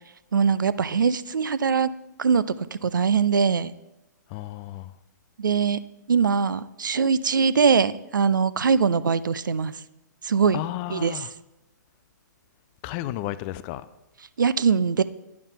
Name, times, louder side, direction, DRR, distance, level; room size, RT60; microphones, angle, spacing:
voice 1, 0.3-1.9 2.2-2.4 2.8-3.7 5.4-5.8 6.1-9.7 10.2-10.6 10.9-11.2 14.4-15.0, right 6 dB, 80° right, 0.4 m, -22 dB
voice 2, 4.3-4.9 10.5-11.3 12.8-13.9, left 15 dB, 30° left, 0.4 m, -33 dB
9.6 x 5.7 x 5.5 m
hypercardioid pair, 130°, 10 cm